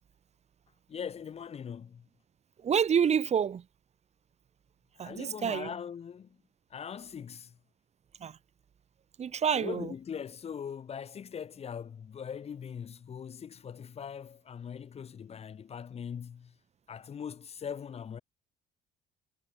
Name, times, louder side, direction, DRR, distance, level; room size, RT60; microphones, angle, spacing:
voice 1, 0.9-2.1 5.0-6.4 6.7-7.6 9.5-16.5 16.9-18.2, left 7 dB, 35° left, 1.1 m, -41 dB
voice 2, 2.6-3.6 5.0-5.7 8.2-8.4 9.2-9.9, right 7 dB, 40° right, 1.6 m, -28 dB
cardioid pair, 110°, 17 cm